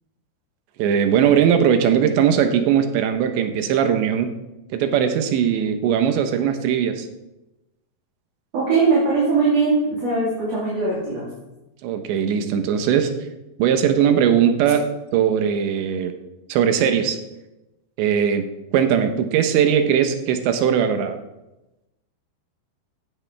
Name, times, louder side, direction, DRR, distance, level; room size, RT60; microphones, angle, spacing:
voice 1, 0.8-4.3 4.7-7.1 11.8-13.1 13.6-14.8 15.1-16.1 16.5-17.2 18.0-18.5 18.7-21.2, right 8 dB, 90° right, 7 dB, 3.3 m, -19 dB
voice 2, 8.5-11.2, right 4 dB, 40° right, -7 dB, 3.8 m, -20 dB
16.0 x 11.0 x 3.5 m, 1.0 s
omnidirectional pair, 5.0 m